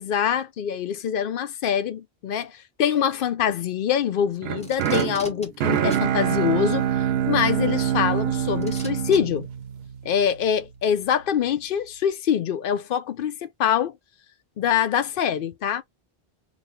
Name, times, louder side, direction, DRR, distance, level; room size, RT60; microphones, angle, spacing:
voice 1, 0.0-6.9 7.3-9.5 10.0-13.9 14.6-15.8, left 8 dB, 65° left, 0.7 m, -24 dB
sound 1, 4.4-10.5, right 9 dB, 75° right, 0.8 m, -25 dB
Packing tape duct tape, 4.6-5.5 5.9-6.1 7.4-7.5 8.6-9.2 10.3-10.4, equal, 5° left, 0.9 m, -40 dB
4.3 x 2.0 x 3.3 m
omnidirectional pair, 1.1 m